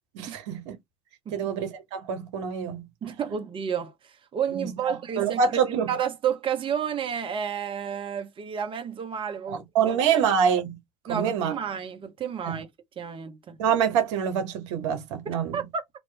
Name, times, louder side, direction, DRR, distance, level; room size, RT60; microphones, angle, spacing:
voice 1, 0.1-0.8 1.3-2.9 4.6-4.7 5.2-5.9 9.5-10.8 11.1-11.5 12.4-12.6 13.6-15.6, right 7 dB, 70° right, 1.0 m, -26 dB
voice 2, 3.0-10.2 11.1-12.7 13.0-13.6 15.2-15.8, right 8 dB, 35° right, 0.9 m, -31 dB
2.9 x 2.6 x 3.3 m
hypercardioid pair, 70°, 15 cm